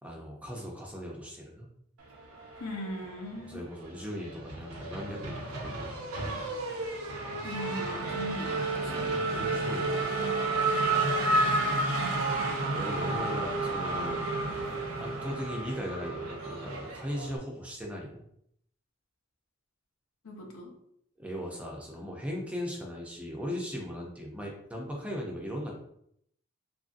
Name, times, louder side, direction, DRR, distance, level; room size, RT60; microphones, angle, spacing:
voice 1, 0.0-1.7 3.5-6.0 8.9-10.3 12.7-14.2 15.0-18.2 21.2-25.7, equal, 5° right, -1 dB, 0.4 m, -38 dB
Race car auto racing / Accelerating revving vroom, 2.4-3.4 3.7-17.4, right 2 dB, 90° right, 0.6 m, -31 dB
voice 2, 2.6-3.6 7.4-9.3 12.0-12.2 20.2-20.7, left 1 dB, 85° left, 1 dB, 0.7 m, -39 dB
2.9 x 2.5 x 2.5 m, 0.72 s
head